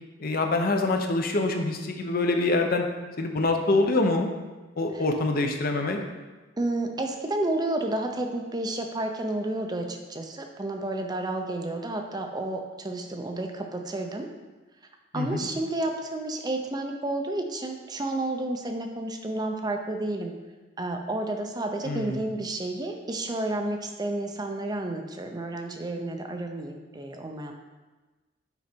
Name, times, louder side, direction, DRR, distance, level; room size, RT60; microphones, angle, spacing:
voice 1, 0.2-2.9 3.2-4.3 4.8-6.0 15.1-15.5 21.8-22.3, left 2 dB, 50° left, 3 dB, 0.7 m, -25 dB
voice 2, 6.6-14.3 15.1-20.3 20.8-27.5, right 2 dB, 20° right, 4 dB, 0.5 m, -31 dB
5.9 x 5.3 x 4.4 m, 1.2 s
head